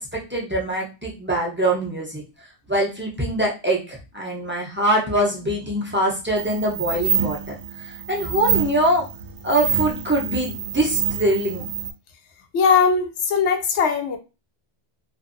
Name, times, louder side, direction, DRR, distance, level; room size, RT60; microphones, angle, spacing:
voice 1, 0.0-2.2 2.7-9.1 9.4-11.7, right 1 dB, 15° right, -3 dB, 0.5 m, -23 dB
sound 1, 6.4-11.9, right 7 dB, 90° right, 0.9 m, -27 dB
voice 2, 12.5-14.2, left 6 dB, 85° left, 6 dB, 0.9 m, -19 dB
2.6 x 2.5 x 2.5 m, 0.29 s
omnidirectional pair, 1.1 m